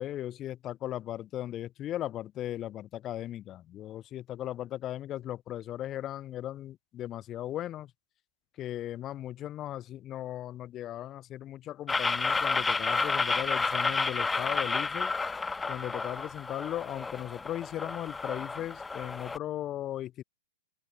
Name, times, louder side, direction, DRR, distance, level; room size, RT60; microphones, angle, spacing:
voice 1, 0.0-7.9 8.6-15.1 15.7-20.2, left 12 dB, 30° left, 1.3 m, -37 dB
sound 1, 11.9-19.4, left 4 dB, 10° left, 1.2 m, -31 dB
open air
hypercardioid pair, 120°, 0 cm